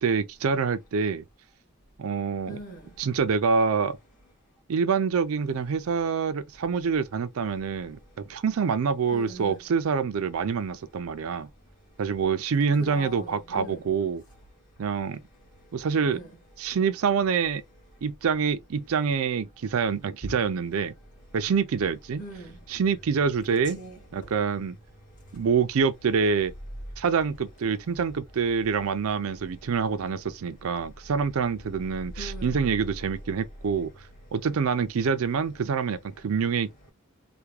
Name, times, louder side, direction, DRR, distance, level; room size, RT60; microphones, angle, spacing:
voice 1, 0.0-1.2 2.0-2.6 3.0-4.0 4.7-11.5 12.0-14.2 14.8-15.2 15.7-16.2 16.6-17.6 18.0-20.9 21.3-22.2 22.7-23.8 24.1-24.8 25.3-26.5 27.0-34.1 34.3-36.9, right 6 dB, 75° right, 0.4 m, -26 dB
voice 2, 2.5-2.9 9.1-9.6 12.8-13.9 16.1-16.4 22.2-22.6 23.5-24.3 32.2-32.5, right 1 dB, 35° left, 1.7 m, -40 dB
3.4 x 2.2 x 3.1 m
head